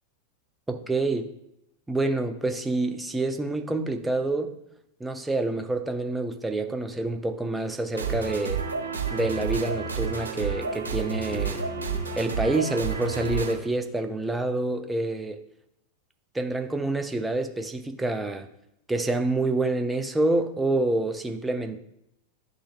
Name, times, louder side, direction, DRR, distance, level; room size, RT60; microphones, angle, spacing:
voice 1, 0.7-1.3 1.9-4.6 5.0-8.6 9.1-11.6 12.2-15.4 16.3-18.5 18.9-21.8, right 2 dB, 10° right, 7 dB, 0.6 m, -27 dB
sound 1, 7.9-13.5, right 5 dB, 75° right, 1.3 m, -30 dB
11.5 x 3.8 x 2.4 m, 0.80 s
figure-of-eight pair, 90°, 0 cm